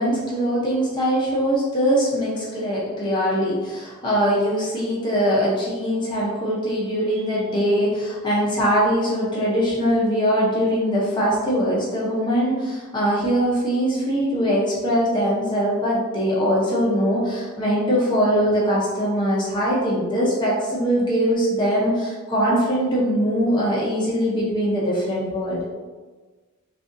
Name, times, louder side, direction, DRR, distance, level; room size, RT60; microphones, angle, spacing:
voice 1, 0.0-25.6, equal, 25° left, -6 dB, 0.6 m, -22 dB
3.7 x 2.3 x 2.5 m, 1.3 s
head